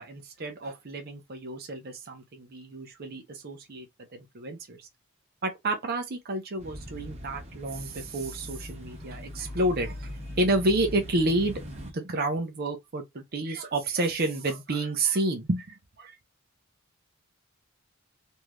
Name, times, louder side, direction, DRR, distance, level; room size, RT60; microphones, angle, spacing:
voice 1, 0.0-3.9 4.1-4.9 5.4-16.2, right 2 dB, 50° right, 0.7 m, -30 dB
sound 1, 6.6-11.9, equal, 30° right, 1.0 m, -40 dB
3.2 x 2.7 x 2.2 m
head